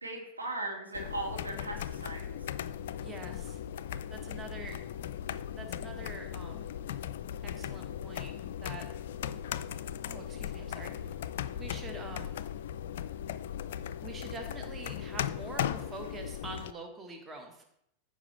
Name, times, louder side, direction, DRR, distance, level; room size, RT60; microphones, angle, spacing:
voice 1, 0.0-2.2, right 2 dB, 80° right, 0 dB, 2.0 m, -38 dB
sound 1, 0.9-16.7, left 10 dB, 55° left, 0.3 m, -38 dB
voice 2, 3.0-3.6 4.1-4.8 5.6-6.7 7.4-8.3 8.6-8.9 10.1-10.9 11.6-12.4 14.0-17.6, right 3 dB, 20° right, 4 dB, 1.5 m, -45 dB
14.5 x 5.3 x 3.4 m, 0.75 s
figure-of-eight pair, 90°, 0 cm